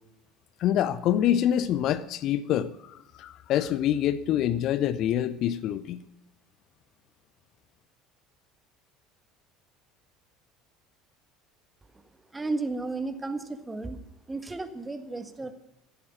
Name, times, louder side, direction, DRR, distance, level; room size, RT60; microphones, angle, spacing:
voice 1, 0.6-6.0, left 11 dB, 50° left, 0.6 m, -26 dB
voice 2, 12.3-15.5, right 3 dB, 15° right, 1.6 m, -33 dB
14.5 x 11.0 x 6.0 m
figure-of-eight pair, 65°, 0 cm